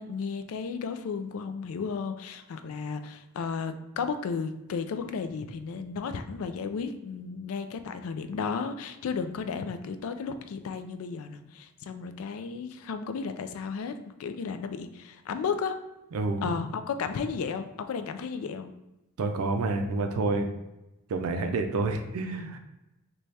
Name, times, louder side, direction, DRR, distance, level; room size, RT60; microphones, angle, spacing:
voice 1, 0.0-13.9 14.2-15.8 16.4-18.7, left 5 dB, 70° left, 9 dB, 0.3 m, -34 dB
voice 2, 16.1-16.5 19.2-20.5 21.1-22.6, right 3 dB, 80° right, 5 dB, 0.4 m, -28 dB
4.1 x 2.2 x 3.2 m, 0.97 s
head